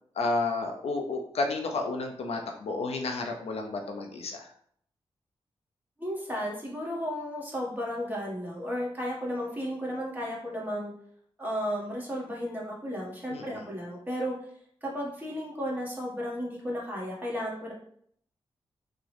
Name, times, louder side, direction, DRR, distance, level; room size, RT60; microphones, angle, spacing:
voice 1, 0.2-4.5 13.3-13.6, left 3 dB, 75° left, 3 dB, 0.4 m, -31 dB
voice 2, 6.0-10.9 11.4-14.4 14.8-17.7, equal, 15° right, -4 dB, 1.4 m, -34 dB
3.6 x 2.0 x 3.2 m, 0.65 s
cardioid pair, 45°, 11 cm